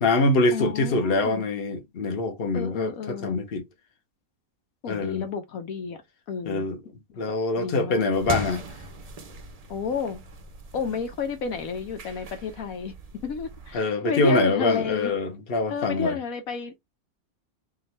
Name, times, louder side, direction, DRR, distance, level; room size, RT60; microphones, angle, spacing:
voice 1, 0.0-3.6 4.9-5.3 6.4-6.8 7.2-8.6 13.7-16.2, left 2 dB, 45° left, 1.2 m, -24 dB
voice 2, 0.5-1.5 2.5-3.4 4.8-6.0 6.3-6.6 7.1-8.1 9.7-10.2 10.7-12.9 13.2-15.1 15.7-16.8, left 5 dB, 75° left, 1.3 m, -31 dB
sound 1, 8.1-13.8, right 2 dB, 45° right, 0.5 m, -39 dB
3.6 x 2.6 x 4.3 m
omnidirectional pair, 1.5 m